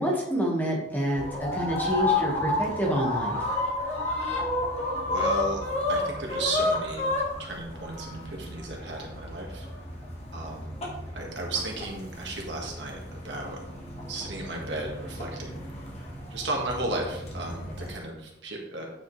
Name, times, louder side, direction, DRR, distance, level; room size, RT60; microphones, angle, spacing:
voice 1, 0.0-3.4, equal, 10° left, -2 dB, 1.6 m, -28 dB
sound 1, 1.1-17.9, left 2 dB, 35° left, 1.7 m, -31 dB
voice 2, 5.0-5.6 5.9-7.1 7.4-9.7 10.3-13.6 14.1-15.7 16.3-18.9, right 2 dB, 65° right, -1 dB, 1.7 m, -35 dB
9.0 x 5.7 x 3.3 m, 0.93 s
head